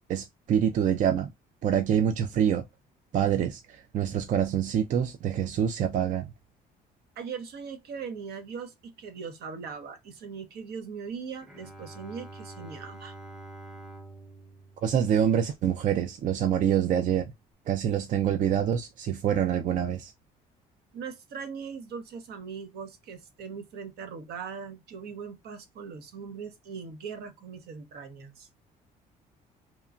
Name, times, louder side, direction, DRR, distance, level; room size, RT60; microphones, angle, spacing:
voice 1, 0.1-1.3 1.6-2.6 3.1-6.3 14.8-17.3 17.7-20.1, right 9 dB, 50° right, 0.4 m, -26 dB
voice 2, 7.2-13.1 20.9-28.5, right 6 dB, 70° right, 0.8 m, -40 dB
Bowed string instrument, 11.4-15.9, right 2 dB, 5° right, 0.7 m, -47 dB
2.9 x 2.2 x 2.4 m
cardioid pair, 110°, 17 cm